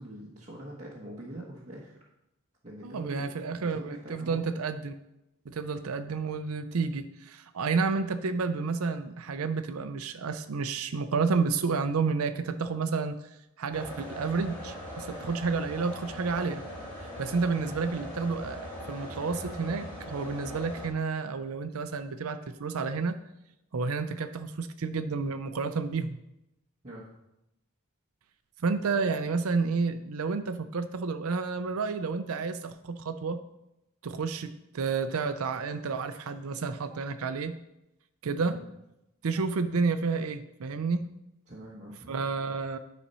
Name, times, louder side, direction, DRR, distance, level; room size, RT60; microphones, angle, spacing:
voice 1, 0.0-2.0 2.6-4.4 26.8-27.1 38.5-38.6 41.5-42.1, right 1 dB, 30° right, -6 dB, 1.3 m, -44 dB
voice 2, 2.8-4.9 5.5-13.2 13.6-16.6 17.2-23.2 23.7-26.2 28.6-33.4 34.0-37.5 38.2-38.6 39.2-41.1 42.1-42.8, right 4 dB, 70° right, 9 dB, 0.5 m, -30 dB
sound 1, 13.7-20.9, left 1 dB, 10° left, 3.3 m, -40 dB
10.0 x 4.2 x 5.5 m, 0.89 s
head